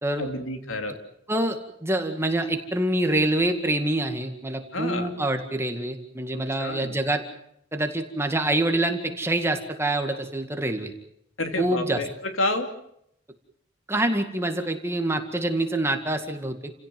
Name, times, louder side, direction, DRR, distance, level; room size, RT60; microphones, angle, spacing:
voice 1, 0.2-1.0 4.7-5.1 6.3-7.0 11.4-12.7, left 2 dB, 90° left, 6 dB, 2.9 m, -29 dB
voice 2, 1.3-7.2 7.7-10.9 11.6-12.0 13.9-16.7, right 1 dB, 15° right, 5 dB, 2.1 m, -26 dB
30.0 x 16.5 x 7.7 m, 0.74 s
head